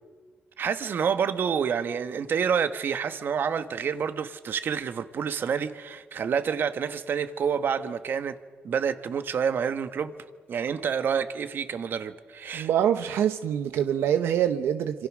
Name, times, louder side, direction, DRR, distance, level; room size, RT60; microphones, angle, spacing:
voice 1, 0.6-8.4 8.6-10.1 10.5-12.7, right 7 dB, 60° right, 1.4 m, -28 dB
voice 2, 12.5-15.1, right 9 dB, 90° right, 0.9 m, -25 dB
26.5 x 26.5 x 6.3 m
cardioid pair, 90°, 4 cm